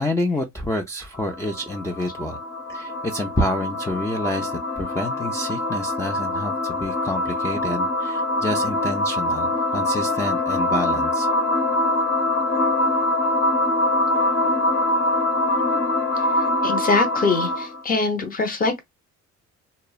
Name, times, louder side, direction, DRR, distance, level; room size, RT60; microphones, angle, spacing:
voice 1, 0.0-2.4 2.7-11.3, left 1 dB, 10° left, 0.4 m, -28 dB
sound 1, 1.1-17.8, left 1 dB, 55° left, 1.0 m, -24 dB
voice 2, 16.6-18.8, left 4 dB, 30° left, 0.8 m, -23 dB
2.8 x 2.1 x 2.2 m
cardioid pair, 90°, 30 cm